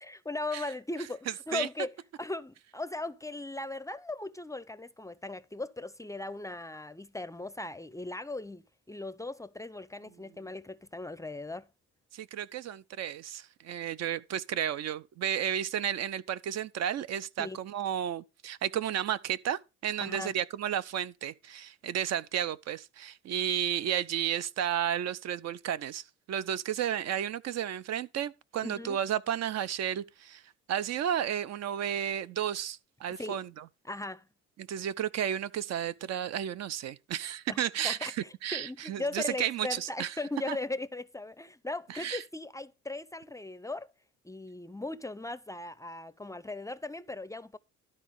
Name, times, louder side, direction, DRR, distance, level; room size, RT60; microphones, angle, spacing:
voice 1, 0.0-11.7 17.4-17.6 20.0-20.4 28.6-29.0 33.2-33.4 33.8-34.3 37.5-37.6 37.8-43.9 44.2-47.6, left 2 dB, 10° left, 0.5 m, -38 dB
voice 2, 12.1-30.4 30.7-33.6 34.6-40.1 40.5-40.6 41.9-42.2, right 10 dB, 60° right, 0.9 m, -33 dB
12.5 x 4.2 x 6.4 m
cardioid pair, 95°, 29 cm